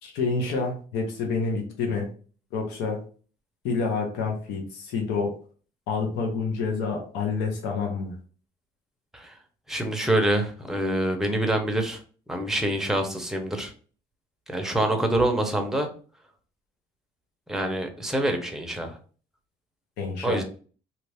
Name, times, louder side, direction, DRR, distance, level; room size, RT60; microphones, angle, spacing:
voice 1, 0.0-2.1 2.5-3.0 3.6-5.3 5.9-8.1 20.0-20.4, left 4 dB, 90° left, 1 dB, 0.9 m, -28 dB
voice 2, 9.7-12.0 12.3-13.7 14.5-15.9 17.5-19.0 20.2-20.4, right 1 dB, 5° right, 4 dB, 0.7 m, -26 dB
2.9 x 2.5 x 3.3 m, 0.40 s
cardioid pair, 110°, 17 cm